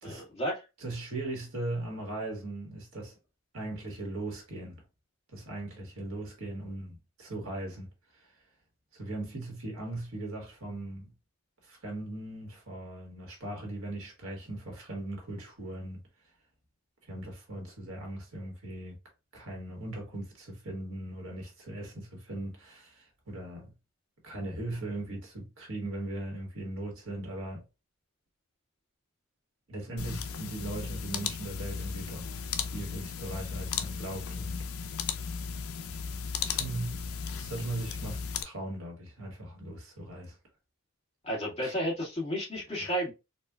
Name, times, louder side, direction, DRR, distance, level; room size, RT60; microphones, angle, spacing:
voice 1, 0.0-0.6 41.2-43.1, equal, 30° left, 1.8 m, -32 dB
voice 2, 0.8-3.2 3.5-4.8 5.3-8.3 8.9-11.1 11.6-16.0 17.0-19.0 19.3-23.7 24.2-27.6 29.7-32.4 32.7-34.7 35.3-35.4 36.4-37.0 37.4-40.3 41.6-41.7 42.8-42.9, right 2 dB, 65° right, 1.4 m, -39 dB
sound 1, 30.0-38.4, left 6 dB, 75° left, 0.5 m, -36 dB
4.1 x 2.4 x 2.3 m
head